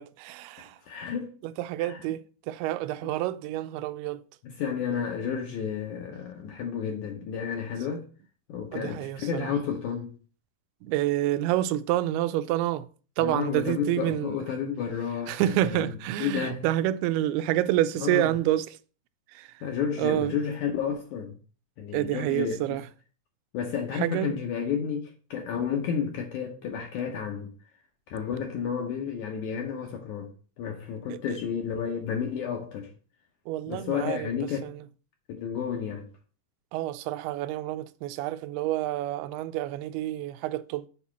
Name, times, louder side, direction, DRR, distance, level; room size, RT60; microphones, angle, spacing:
voice 1, 0.0-0.8 1.4-4.2 8.7-9.5 10.8-12.9 13.2-14.3 15.3-18.7 19.4-19.5 20.0-20.4 21.9-22.8 24.0-24.4 31.1-31.4 33.5-34.3 34.6-34.8 36.7-40.9, right 14 dB, 85° right, 2.5 m, -28 dB
voice 2, 0.8-1.4 1.8-2.0 4.4-8.1 8.5-10.1 13.2-15.9 16.2-16.7 18.0-18.3 19.6-21.4 21.8-22.6 23.5-27.5 28.1-30.3 30.6-32.9 33.7-34.7 35.3-36.1, left 7 dB, 75° left, 1.8 m, -31 dB
7.0 x 4.1 x 5.9 m
omnidirectional pair, 4.4 m